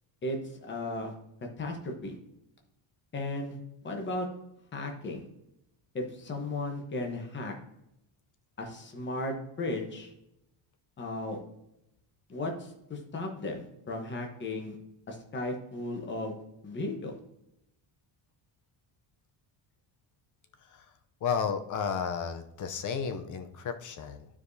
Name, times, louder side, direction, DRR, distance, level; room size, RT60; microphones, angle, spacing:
voice 1, 0.2-1.1 1.6-2.2 3.1-3.6 3.8-4.3 4.7-5.2 5.9-7.5 8.6-10.1 11.0-11.4 12.3-14.8 15.1-16.4 16.6-17.2, left 2 dB, 25° left, 2 dB, 1.0 m, -35 dB
voice 2, 21.2-24.3, left 6 dB, 40° left, 8 dB, 0.6 m, -33 dB
12.5 x 4.9 x 2.7 m, 0.84 s
cardioid pair, 165°, 49 cm